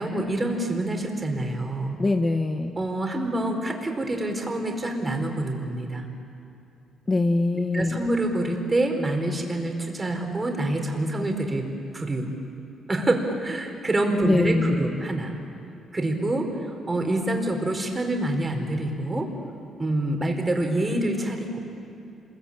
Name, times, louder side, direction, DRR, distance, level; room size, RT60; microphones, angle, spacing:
voice 1, 0.0-2.0 2.8-6.1 7.5-11.7 11.9-12.3 12.9-15.3 15.9-19.3 19.8-21.6, right 1 dB, 25° right, 3 dB, 4.6 m, -26 dB
voice 2, 2.0-2.7 7.1-8.0 14.2-14.9, left 2 dB, 25° left, 6 dB, 1.4 m, -23 dB
27.5 x 22.5 x 8.8 m, 2.7 s
cardioid pair, 90°, 0 cm